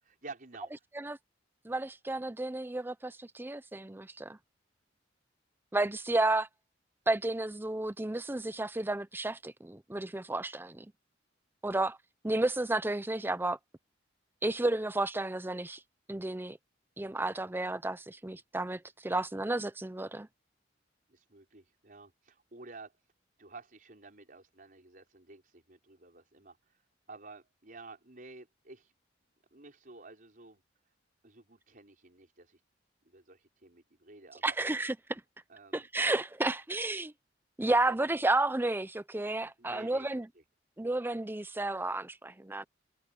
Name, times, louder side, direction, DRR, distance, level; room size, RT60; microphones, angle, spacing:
voice 1, 0.0-0.7 21.1-23.0 23.4-26.8 27.1-28.9 29.5-30.6 31.2-32.6 33.0-34.6 35.5-35.9 37.6-38.0 39.6-40.1, right 3 dB, 45° right, 5.4 m, -51 dB
voice 2, 1.6-4.4 5.7-6.5 7.1-10.9 11.6-12.0 12.2-13.6 14.4-15.8 16.1-16.6 17.0-20.3 34.4-35.2 35.7-37.1 37.6-40.3 40.8-42.6, right 2 dB, 10° right, 0.6 m, -32 dB
head